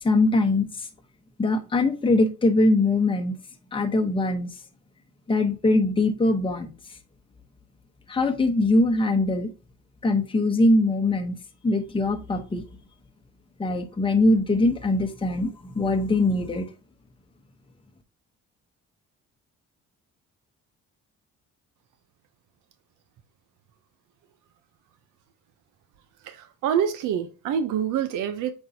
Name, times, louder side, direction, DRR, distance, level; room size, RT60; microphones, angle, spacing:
voice 1, 0.0-0.9 1.4-3.4 3.7-4.5 5.3-7.0 8.1-9.5 10.0-11.4 11.6-12.6 13.6-16.7, left 2 dB, 15° left, 0.9 m, -22 dB
voice 2, 26.2-28.5, right 8 dB, 90° right, 0.7 m, -26 dB
7.6 x 4.5 x 2.7 m
cardioid pair, 90°, 30 cm